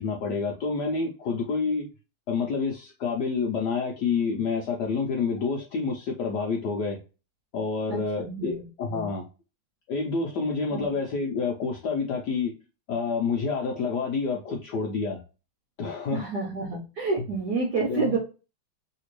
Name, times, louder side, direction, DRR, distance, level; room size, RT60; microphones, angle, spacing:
voice 1, 0.0-1.9 2.3-7.0 7.5-9.2 9.9-12.5 12.9-15.2 15.8-16.3 17.9-18.2, left 4 dB, 75° left, 1.0 m, -28 dB
voice 2, 7.9-9.1 10.7-10.9 16.1-18.2, right 3 dB, 60° right, 1.2 m, -29 dB
3.3 x 2.8 x 3.0 m
omnidirectional pair, 2.4 m